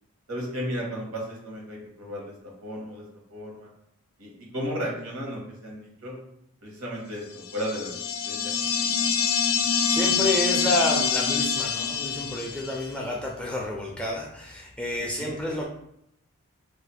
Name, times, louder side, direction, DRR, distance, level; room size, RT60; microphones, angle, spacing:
voice 1, 0.3-2.3 2.6-3.0 3.3-3.7 4.2-6.2 6.6-8.0 8.2-9.1 15.0-15.4, equal, 85° right, -2 dB, 1.1 m, -34 dB
sound 1, 7.5-12.9, left 6 dB, 75° left, 0.4 m, -26 dB
voice 2, 9.6-15.6, left 1 dB, 5° left, -2 dB, 0.4 m, -29 dB
2.4 x 2.4 x 4.1 m, 0.76 s
head